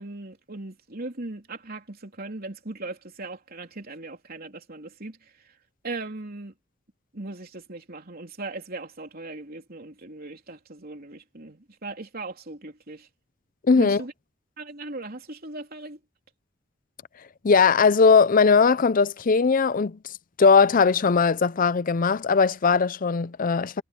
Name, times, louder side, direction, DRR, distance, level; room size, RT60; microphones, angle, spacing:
voice 1, 0.0-5.6 5.8-6.5 7.1-13.1 13.8-14.1 14.6-16.0, right 2 dB, 50° right, 3.5 m, -38 dB
voice 2, 13.6-14.0 17.4-20.0 20.4-23.8, left 5 dB, 45° left, 0.5 m, -19 dB
head